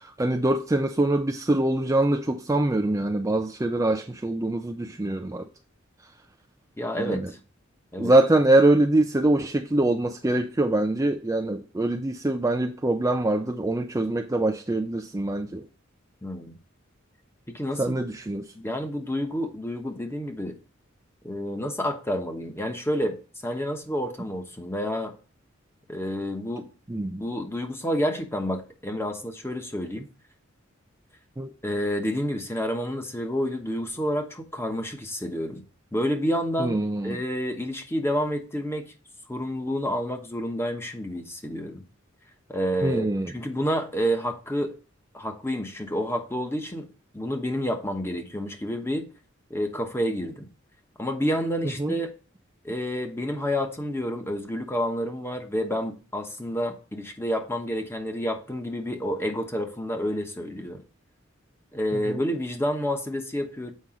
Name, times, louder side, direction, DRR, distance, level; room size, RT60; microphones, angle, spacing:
voice 1, 0.0-5.5 7.0-7.3 8.0-15.6 17.8-18.5 26.9-27.2 31.4-31.5 36.6-37.2 42.8-43.3 51.8-51.9 62.1-62.2, right 2 dB, 15° right, 0.4 m, -24 dB
voice 2, 6.8-7.4 7.9-8.1 16.2-16.5 17.5-18.0 18.5-20.6 21.2-25.1 25.9-26.7 27.2-30.1 31.6-35.6 35.9-36.8 37.0-38.9 39.3-41.8 42.5-44.7 45.1-46.9 47.1-49.1 49.5-50.5 51.0-52.1 52.6-60.8 61.7-63.7, equal, 10° left, 1.0 m, -29 dB
7.5 x 5.2 x 3.8 m
head